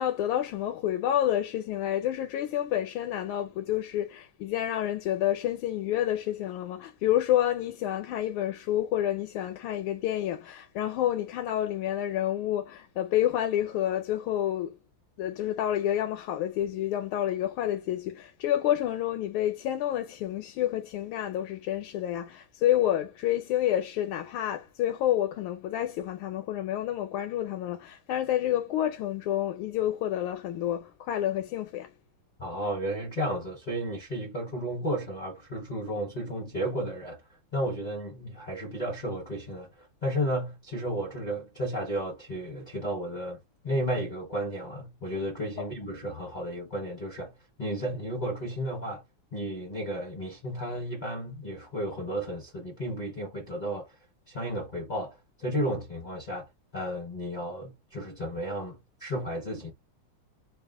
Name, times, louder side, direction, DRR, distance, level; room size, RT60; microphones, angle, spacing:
voice 1, 0.0-14.7 15.2-31.9 45.6-45.7, left 12 dB, 80° left, 1.5 m, -29 dB
voice 2, 32.4-37.2 37.5-49.0 49.3-54.0 54.3-59.7, equal, 60° left, 0.4 m, -33 dB
3.5 x 2.4 x 3.5 m
omnidirectional pair, 2.3 m